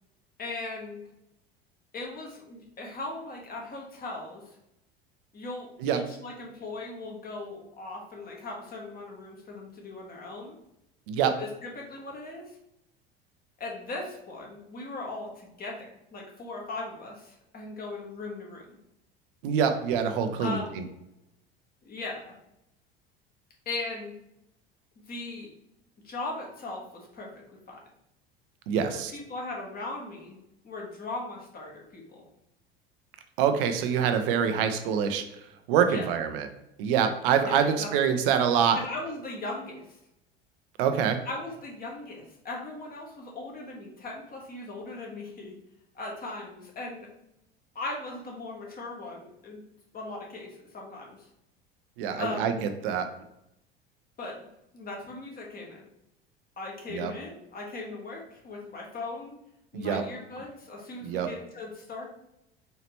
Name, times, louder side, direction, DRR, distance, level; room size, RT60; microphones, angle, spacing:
voice 1, 0.4-1.0 1.9-4.6 5.3-10.6 11.4-12.6 13.6-18.8 20.4-20.8 21.8-22.3 23.6-24.1 25.1-25.5 26.0-27.3 27.7-27.8 29.1-30.4 30.6-32.2 35.9-36.0 37.4-38.2 38.7-40.0 41.3-45.5 45.9-47.1 47.7-49.6 49.9-51.3 52.2-52.6 54.2-54.4 54.7-55.9 56.6-59.4 59.7-62.1, left 2 dB, 30° left, -1 dB, 1.3 m, -38 dB
voice 2, 19.4-20.8 28.7-29.1 33.4-35.2 35.7-36.5 36.8-38.8 40.8-41.2 52.0-53.1 56.9-57.1 59.7-60.0 61.0-61.3, right 7 dB, 60° right, 8 dB, 0.6 m, -25 dB
4.4 x 2.9 x 2.9 m, 0.84 s
figure-of-eight pair, 70°, 30 cm